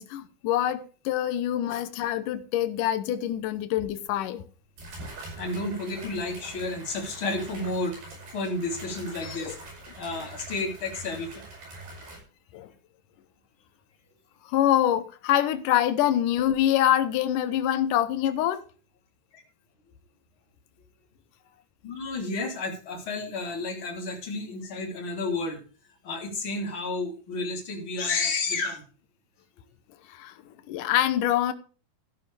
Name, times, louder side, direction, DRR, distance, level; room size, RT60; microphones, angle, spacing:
voice 1, 0.0-4.4 9.5-9.6 12.5-12.7 14.5-18.6 30.1-30.3 30.7-31.5, left 11 dB, 75° left, 2.0 m, -25 dB
sound 1, 3.8-3.9 4.8-12.2, right 2 dB, 65° right, 9.1 m, -43 dB
voice 2, 5.4-7.9 8.3-9.6 10.0-11.3 21.8-25.6 26.0-28.8, left 3 dB, 30° left, 3.5 m, -31 dB
13.5 x 11.5 x 3.4 m
omnidirectional pair, 4.9 m